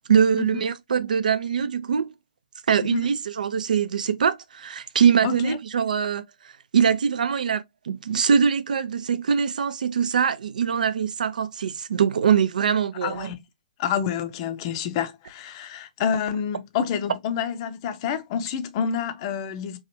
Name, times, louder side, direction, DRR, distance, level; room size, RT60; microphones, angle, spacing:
voice 1, 0.1-2.1 2.7-6.2 6.7-13.3, right 7 dB, 65° right, 0.4 m, -22 dB
voice 2, 5.2-5.6 13.0-13.4 13.8-19.8, left 7 dB, 35° left, 0.5 m, -28 dB
3.1 x 2.4 x 2.7 m
figure-of-eight pair, 120°, 5 cm